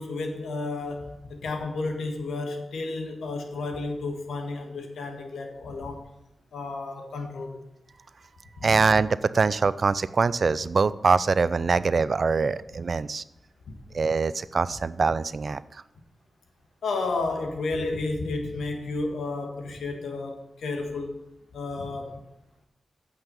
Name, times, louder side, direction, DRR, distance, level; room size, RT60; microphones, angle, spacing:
voice 1, 0.0-6.1 6.5-7.6 8.6-8.7 13.6-13.7 16.8-21.2 21.5-22.2, left 3 dB, 90° left, 4 dB, 1.5 m, -32 dB
voice 2, 8.6-13.2 13.9-15.6, right 4 dB, 60° right, 17 dB, 0.4 m, -23 dB
8.9 x 5.8 x 6.9 m, 0.87 s
cardioid pair, 50°, 0 cm